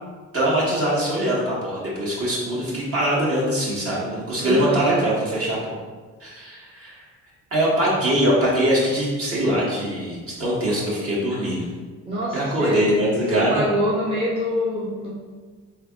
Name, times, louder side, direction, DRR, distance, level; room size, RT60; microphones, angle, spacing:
voice 1, 0.3-5.8 6.2-7.0 7.5-11.6 12.3-13.6, right 1 dB, 50° right, -6 dB, 1.4 m, -22 dB
voice 2, 4.4-5.0 12.1-15.1, left 1 dB, 20° right, -7 dB, 0.8 m, -25 dB
3.5 x 3.2 x 2.5 m, 1.4 s
cardioid pair, 90°, 30 cm